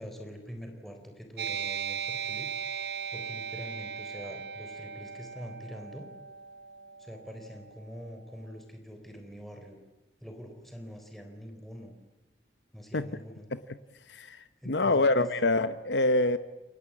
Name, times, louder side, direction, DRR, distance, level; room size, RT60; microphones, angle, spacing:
voice 1, 0.0-2.5 3.1-6.1 7.0-9.8 10.2-12.0 12.7-13.5 14.6-15.3, equal, ahead, 4 dB, 3.8 m, -44 dB
sound 1, 1.4-8.4, right 7 dB, 65° right, 0.9 m, -38 dB
voice 2, 14.1-16.4, left 2 dB, 85° left, 12 dB, 1.0 m, -26 dB
29.0 x 23.5 x 8.6 m, 1.1 s
head